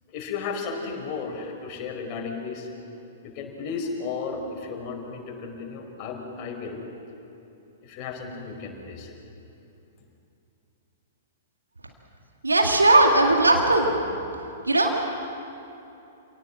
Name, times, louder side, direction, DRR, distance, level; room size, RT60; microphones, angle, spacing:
voice 1, 0.1-2.7 3.2-6.8 7.8-9.1, left 5 dB, 35° left, 1 dB, 4.6 m, -34 dB
voice 2, 12.4-13.9 14.7-14.9, right 2 dB, 80° right, 2 dB, 2.0 m, -18 dB
28.0 x 18.0 x 7.6 m, 2.8 s
figure-of-eight pair, 105°, 0 cm